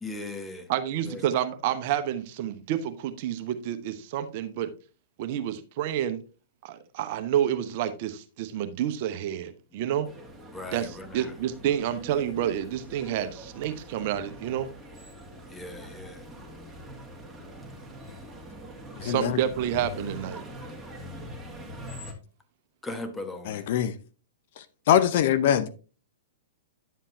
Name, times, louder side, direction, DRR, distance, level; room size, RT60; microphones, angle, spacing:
voice 1, 0.0-0.7 1.0-1.2 10.5-11.3 13.1-13.2 15.5-16.3 19.0-19.2 22.8-23.7, left 2 dB, 10° left, 1.4 m, -38 dB
voice 2, 0.7-4.7 5.2-6.2 6.6-10.1 10.7-14.7 19.0-20.4, right 10 dB, 50° right, 0.9 m, -29 dB
sound 1, 10.0-22.1, equal, 10° right, 2.1 m, -43 dB
voice 3, 19.0-19.4 23.5-23.9 24.9-25.7, left 10 dB, 55° left, 0.7 m, -22 dB
10.0 x 7.3 x 2.7 m
figure-of-eight pair, 110°, 0 cm